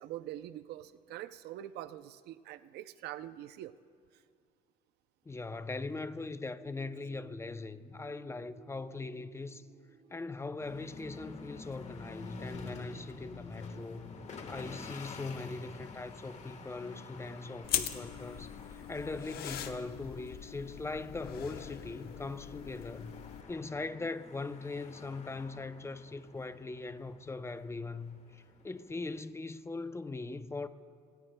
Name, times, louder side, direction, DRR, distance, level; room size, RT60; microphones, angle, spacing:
voice 1, 0.0-3.7, right 13 dB, 75° right, 0.5 m, -44 dB
voice 2, 5.3-9.6 10.1-14.2 14.5-23.1 23.5-30.7, left 3 dB, 15° left, 0.5 m, -40 dB
sound 1, 6.5-14.9, right 3 dB, 40° right, 1.8 m, -58 dB
sound 2, 10.6-29.2, left 4 dB, 40° left, 1.4 m, -50 dB
sound 3, 17.6-23.4, left 10 dB, 70° left, 0.9 m, -40 dB
28.5 x 19.5 x 2.2 m
cardioid pair, 110°, 17 cm